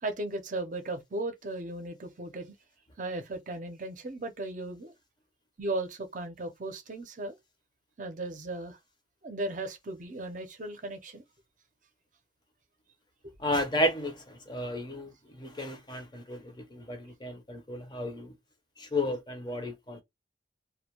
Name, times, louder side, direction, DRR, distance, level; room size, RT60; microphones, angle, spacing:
voice 1, 0.0-2.5 3.0-4.9 5.6-7.4 8.0-8.8 9.2-11.2 13.2-13.3, right 2 dB, 45° right, 0.6 m, -36 dB
voice 2, 13.4-18.3 18.8-20.0, left 1 dB, 25° left, 0.6 m, -33 dB
2.2 x 2.1 x 2.9 m
head